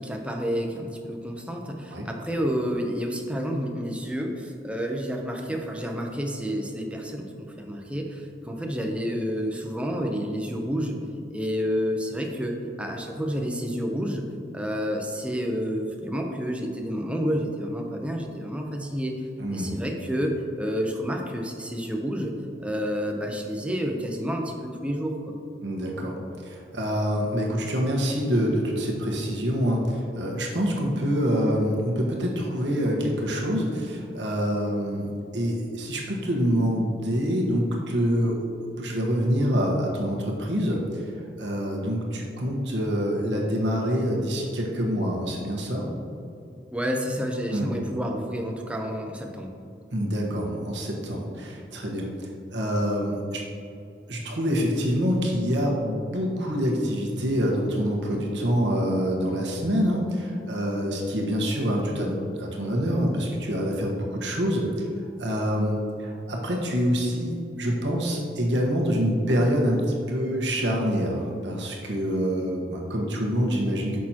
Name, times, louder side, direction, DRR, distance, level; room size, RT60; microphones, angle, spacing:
voice 1, 0.0-11.0 11.3-14.2 14.5-19.1 19.5-22.3 22.6-25.3 46.7-49.5, equal, 5° right, 2 dB, 0.7 m, -29 dB
voice 2, 19.4-19.7 25.6-26.1 26.4-38.4 38.8-41.1 41.4-45.8 47.5-47.7 49.9-53.4 54.1-64.9 65.2-69.8 70.1-74.0, equal, 85° right, -1 dB, 1.4 m, -26 dB
9.0 x 6.2 x 2.9 m, 2.5 s
head